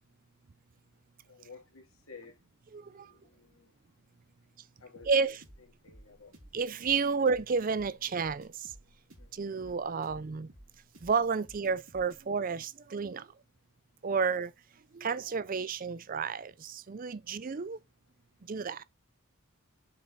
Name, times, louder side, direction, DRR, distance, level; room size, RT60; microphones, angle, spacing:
voice 1, 1.2-2.4 2.8-3.7 4.8-5.3 5.8-6.4 9.2-9.5, left 4 dB, 70° left, 2.4 m, -53 dB
voice 2, 2.7-3.1 5.0-5.4 6.5-8.7 9.3-10.5 11.0-13.3 14.0-14.5 14.9-17.8 18.4-18.8, right 5 dB, 40° right, 0.4 m, -31 dB
sound 1, 4.9-12.2, equal, 65° right, 3.1 m, -55 dB
7.0 x 4.5 x 4.6 m
head